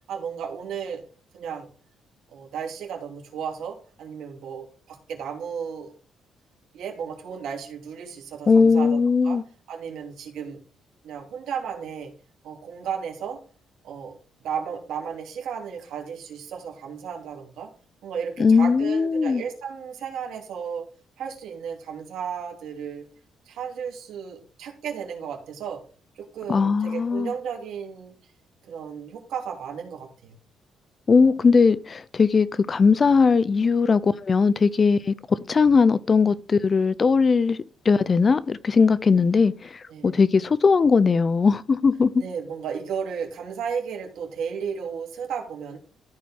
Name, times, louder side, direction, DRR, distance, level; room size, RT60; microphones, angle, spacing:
voice 1, 0.1-1.0 1.3-1.7 2.3-5.9 6.7-9.4 9.7-10.6 11.0-12.1 12.4-13.4 13.8-14.2 14.4-17.7 18.0-20.8 21.2-23.1 23.5-25.8 26.2-28.1 28.7-30.3 39.9-40.1 42.2-45.8, right 7 dB, 80° right, 2.9 m, -34 dB
voice 2, 8.5-9.4 18.4-19.4 26.5-27.3 31.1-42.1, left 5 dB, 35° left, 0.6 m, -19 dB
14.0 x 4.7 x 3.6 m
cardioid pair, 90°, 0 cm